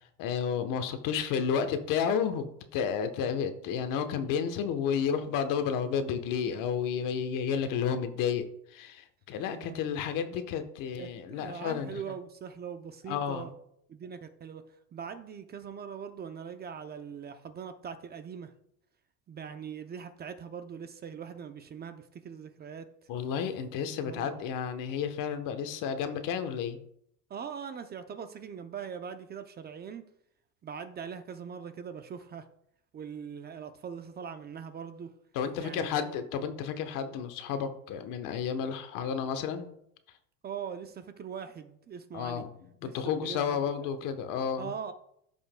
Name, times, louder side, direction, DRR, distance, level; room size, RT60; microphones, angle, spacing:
voice 1, 0.2-11.9 13.1-13.5 23.1-26.8 35.3-39.7 42.1-42.5 42.8-44.7, left 7 dB, 60° left, 9 dB, 1.0 m, -31 dB
voice 2, 9.5-9.8 11.0-13.5 13.9-14.6 14.9-18.5 19.3-22.9 24.0-24.5 27.3-30.0 30.6-32.5 32.9-35.1 35.6-36.1 40.4-42.4 42.8-43.9 44.6-44.9, right 7 dB, 25° right, 9 dB, 0.5 m, -41 dB
14.0 x 5.5 x 2.2 m, 0.72 s
supercardioid pair, 120°, 37 cm